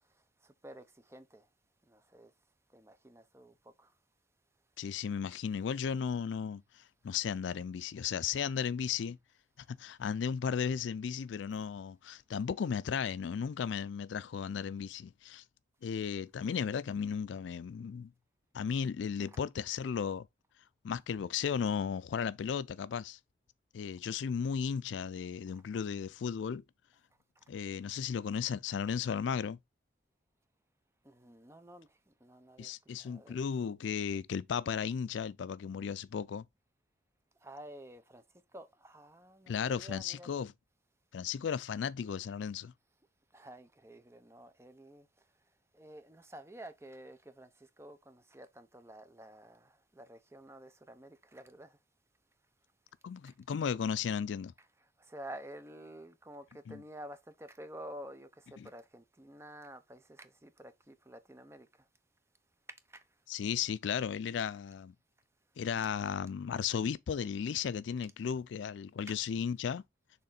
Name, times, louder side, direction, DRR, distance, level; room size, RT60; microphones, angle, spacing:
voice 1, 0.0-1.5 1.8-2.3 2.7-3.9 19.3-19.4 25.5-25.6 27.4-27.5 31.0-33.5 37.4-38.2 38.5-40.3 43.3-45.3 45.7-51.8 53.3-53.4 54.6-61.9 62.9-63.0 65.8-65.9 69.1-69.2, right 1 dB, 15° right, 0.7 m, -51 dB
voice 2, 4.8-6.6 7.0-9.2 9.7-15.4 15.8-18.1 18.5-20.3 20.8-23.2 23.7-26.6 27.5-29.6 32.6-36.4 39.5-40.5 41.1-42.7 53.0-54.5 56.7-56.8 58.6-58.7 63.3-64.9 65.6-69.8, left 7 dB, 70° left, 0.3 m, -35 dB
6.5 x 3.6 x 4.0 m
head